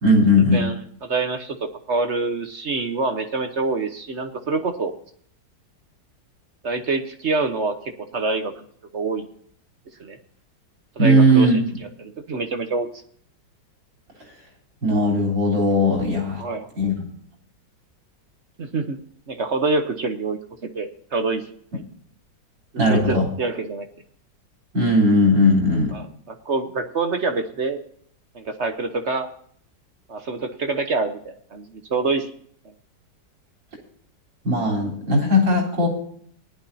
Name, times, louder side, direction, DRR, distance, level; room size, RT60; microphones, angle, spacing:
voice 1, 0.0-0.6 11.0-11.6 14.8-16.4 16.8-17.1 22.8-23.3 24.7-25.9 34.4-35.9, left 1 dB, 80° right, -2 dB, 4.5 m, -18 dB
voice 2, 0.5-4.9 6.6-8.5 8.9-9.3 10.0-10.2 11.0-11.6 12.0-12.9 16.4-16.7 18.6-19.0 19.3-20.4 20.7-21.4 21.7-21.8 22.7-23.9 25.9-27.8 28.3-29.3 30.1-32.3, right 3 dB, 50° right, 7 dB, 1.0 m, -26 dB
18.5 x 11.0 x 2.7 m, 0.64 s
omnidirectional pair, 2.0 m